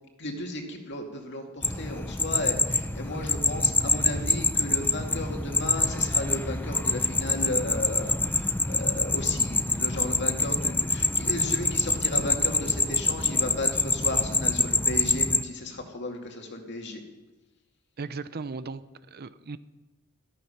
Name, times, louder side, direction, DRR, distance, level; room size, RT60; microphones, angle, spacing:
voice 1, 0.2-17.0, left 2 dB, 55° left, 3 dB, 2.3 m, -34 dB
sound 1, 1.6-15.4, left 3 dB, 10° left, 0.5 m, -26 dB
voice 2, 18.0-19.6, right 4 dB, 50° right, 14 dB, 0.6 m, -37 dB
14.0 x 13.5 x 5.8 m, 1.1 s
head